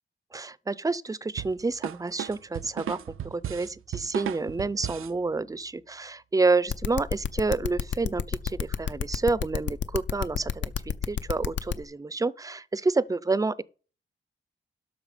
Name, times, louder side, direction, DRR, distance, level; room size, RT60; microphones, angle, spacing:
voice 1, 0.3-3.0 3.2-13.6, right 3 dB, 15° right, 0.4 m, -29 dB
sound 1, 1.4-5.2, right 11 dB, 90° right, 0.4 m, -35 dB
sound 2, 6.7-11.7, left 8 dB, 65° left, 0.6 m, -29 dB
12.5 x 5.9 x 5.0 m
wide cardioid pair, 120°, 21 cm